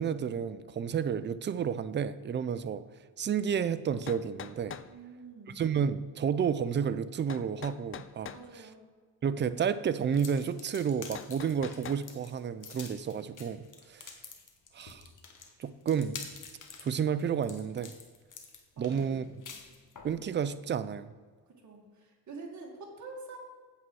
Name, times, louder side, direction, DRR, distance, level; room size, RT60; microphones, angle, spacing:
voice 1, 0.0-2.9 3.2-4.8 5.5-8.7 9.2-14.1 14.7-15.0 15.6-16.2 16.8-18.0 18.8-19.3 20.0-21.1, right 7 dB, 30° right, 0.4 m, -31 dB
sound 1, 4.1-4.9 7.3-8.4 11.1-12.0, left 8 dB, 35° left, 0.4 m, -43 dB
voice 2, 4.9-5.6 8.3-8.8 18.8-19.5 21.6-23.4, right 3 dB, 45° right, 2.2 m, -47 dB
sound 2, 10.1-20.2, left 5 dB, 50° left, 1.4 m, -47 dB
8.5 x 7.5 x 4.7 m
cardioid pair, 120°, 40 cm